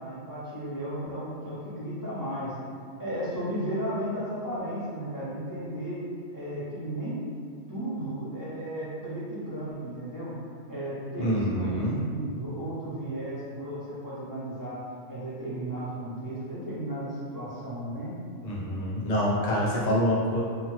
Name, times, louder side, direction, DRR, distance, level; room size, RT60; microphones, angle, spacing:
voice 1, 0.0-2.6 3.0-6.0 6.3-7.2 7.7-10.3 10.7-14.8 15.1-18.1, right 1 dB, 20° right, -10 dB, 0.6 m, -34 dB
voice 2, 11.2-11.9 18.4-20.4, equal, 40° left, -6 dB, 0.5 m, -26 dB
2.8 x 2.2 x 3.1 m, 2.3 s
omnidirectional pair, 1.2 m